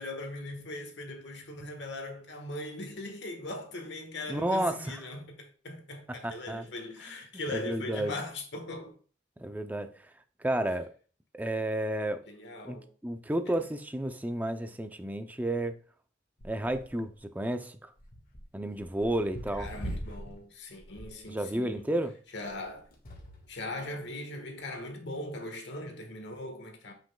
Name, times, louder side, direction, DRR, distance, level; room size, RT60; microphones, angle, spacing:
voice 1, 0.0-9.0 12.3-12.9 13.5-13.7 19.6-21.8 22.3-22.9 23.5-26.9, left 2 dB, 65° left, 1.4 m, -40 dB
voice 2, 4.3-5.0 6.1-6.7 7.5-8.1 9.4-10.0 10.4-10.9 11.3-12.2 12.6-12.8 13.0-15.8 16.4-17.9 18.5-19.7 21.3-22.2, right 1 dB, 10° right, 0.5 m, -31 dB
sound 1, 16.4-17.2 18.0-20.4 20.8-21.2 22.3-23.6 24.4-24.5, equal, 50° left, 1.6 m, -42 dB
7.7 x 6.0 x 2.3 m
head